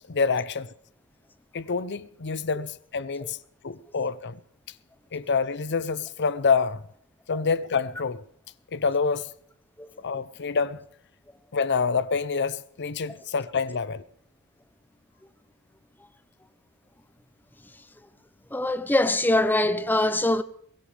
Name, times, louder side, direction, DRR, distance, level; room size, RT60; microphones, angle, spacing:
voice 1, 0.1-0.7 1.5-3.4 3.6-4.4 5.1-6.8 7.3-8.2 8.7-9.3 10.0-10.8 11.5-14.0, left 5 dB, 50° left, 0.7 m, -27 dB
voice 2, 18.5-20.4, left 1 dB, 10° left, 0.8 m, -22 dB
22.0 x 16.5 x 3.4 m
head